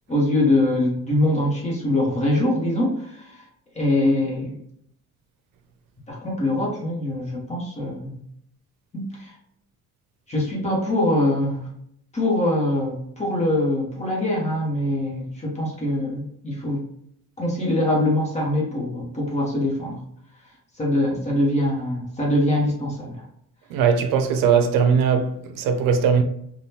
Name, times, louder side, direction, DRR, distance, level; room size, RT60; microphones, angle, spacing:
voice 1, 0.1-3.5 3.7-4.6 6.1-8.2 8.9-9.3 10.3-11.7 12.1-16.8 17.4-20.0 20.8-23.2, left 1 dB, 20° left, 0.9 m, -23 dB
voice 2, 23.7-26.2, right 6 dB, 80° right, 0.6 m, -19 dB
3.5 x 2.3 x 2.7 m
cardioid pair, 180°, 33 cm